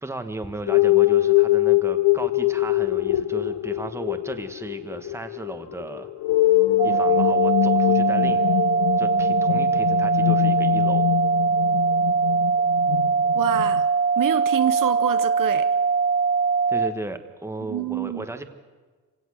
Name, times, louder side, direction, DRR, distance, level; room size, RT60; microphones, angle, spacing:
voice 1, 0.0-6.1 6.8-8.5 9.0-11.1 16.7-18.4, right 2 dB, 5° right, 1.3 m, -35 dB
sound 1, 0.7-13.8, left 16 dB, 75° left, 0.6 m, -23 dB
sound 2, 6.8-16.9, right 5 dB, 25° right, 0.6 m, -21 dB
voice 2, 13.3-13.9 14.2-15.7 17.7-18.3, right 11 dB, 60° right, 0.9 m, -27 dB
26.5 x 17.0 x 6.3 m
cardioid pair, 130°, 36 cm